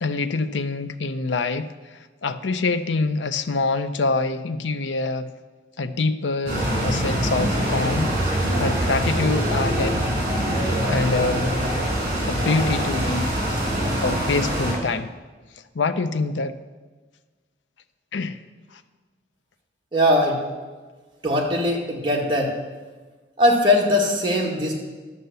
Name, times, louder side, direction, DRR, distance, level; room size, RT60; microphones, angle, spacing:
voice 1, 0.0-5.3 5.8-10.0 10.8-11.5 12.3-13.6 14.0-15.1 15.7-16.6 18.1-18.4 18.7-18.8, left 3 dB, 90° left, 11 dB, 0.6 m, -25 dB
sound 1, 6.5-14.7, equal, 45° right, 3.6 m, -24 dB
voice 2, 19.9-20.4 21.2-22.5 23.4-24.7, left 1 dB, 25° right, -2 dB, 1.9 m, -20 dB
11.0 x 6.8 x 6.8 m, 1.4 s
head